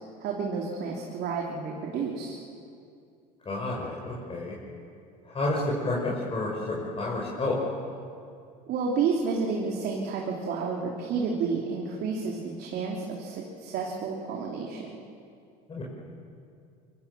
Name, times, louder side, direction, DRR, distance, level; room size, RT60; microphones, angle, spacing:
voice 1, 0.2-2.4 8.7-15.0, right 5 dB, 55° right, -1 dB, 3.3 m, -30 dB
voice 2, 3.5-4.5 5.3-7.6 15.7-15.8, left 2 dB, 30° left, -4 dB, 6.1 m, -30 dB
24.5 x 23.5 x 7.1 m, 2.4 s
hypercardioid pair, 80°, 20 cm